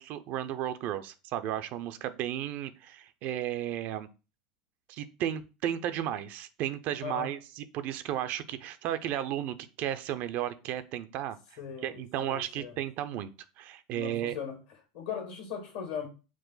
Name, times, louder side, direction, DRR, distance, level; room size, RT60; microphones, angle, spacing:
voice 1, 0.0-4.1 4.9-11.4 11.8-14.4, right 11 dB, 55° right, 0.4 m, -34 dB
voice 2, 7.0-7.3 11.6-12.8 13.9-14.6 14.9-16.1, left 7 dB, 75° left, 1.6 m, -38 dB
4.8 x 2.1 x 3.9 m
hypercardioid pair, 90°, 4 cm